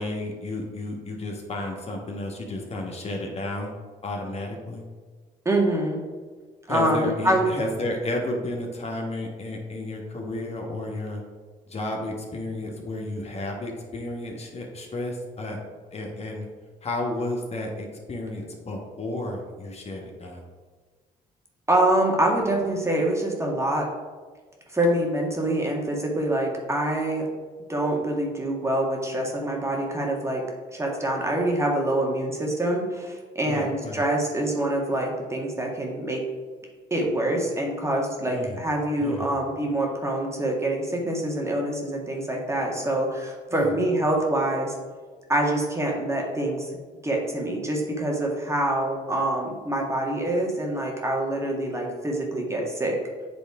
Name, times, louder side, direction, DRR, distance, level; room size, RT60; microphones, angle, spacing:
voice 1, 0.0-3.7 4.0-4.8 6.7-11.2 11.7-15.6 15.9-16.5 16.8-20.4 33.5-34.0 38.3-38.6 39.0-39.3 43.5-43.7, left 1 dB, 40° left, 1 dB, 1.3 m, -32 dB
voice 2, 5.5-6.0 6.7-7.5 21.7-23.9 24.7-27.3 27.7-30.4 30.7-36.2 36.9-44.7 45.3-46.7 47.0-53.0, right 1 dB, 15° right, -1 dB, 1.7 m, -25 dB
8.4 x 3.4 x 4.8 m, 1.5 s
supercardioid pair, 70°, 16 cm